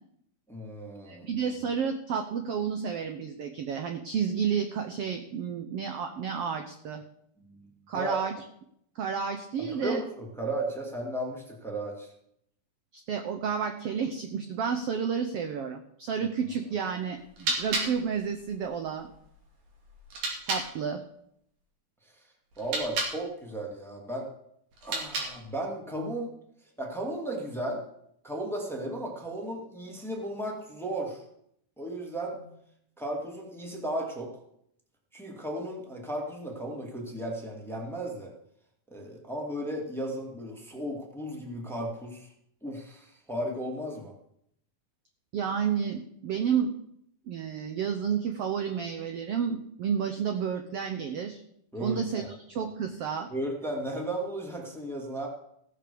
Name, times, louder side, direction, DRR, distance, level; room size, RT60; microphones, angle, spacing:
voice 1, 0.5-1.3 7.4-7.7 7.9-8.2 9.7-12.1 22.0-22.1 22.6-24.3 24.8-26.3 26.8-27.8 28.2-31.2 31.8-32.6 33.0-34.3 35.1-38.3 38.9-42.3 42.6-44.1 51.7-52.3 53.3-55.3, right 1 dB, ahead, 0 dB, 1.8 m, -35 dB
voice 2, 1.1-7.0 7.9-8.3 8.9-10.0 12.9-19.1 20.4-21.0 45.3-46.7 47.3-51.4 51.8-53.3, right 7 dB, 70° right, 6 dB, 1.5 m, -31 dB
sound 1, 17.1-20.7 22.5-23.2 24.7-25.6, right 2 dB, 90° right, 4.4 m, -34 dB
15.5 x 6.9 x 6.9 m, 0.74 s
omnidirectional pair, 3.6 m